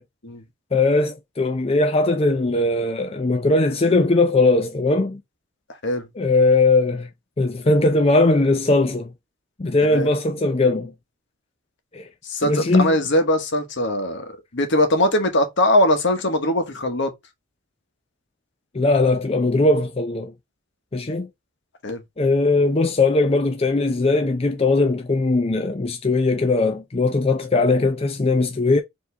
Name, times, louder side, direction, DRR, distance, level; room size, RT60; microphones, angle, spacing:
voice 1, 0.7-5.2 6.2-7.1 7.4-9.1 9.6-10.9 11.9-12.1 12.4-13.0 18.7-20.3 20.9-21.3 22.2-28.8, left 2 dB, 30° left, 0.5 m, -19 dB
voice 2, 12.2-17.1 21.8-22.0, left 1 dB, 65° left, 1.3 m, -21 dB
4.8 x 3.1 x 3.3 m
head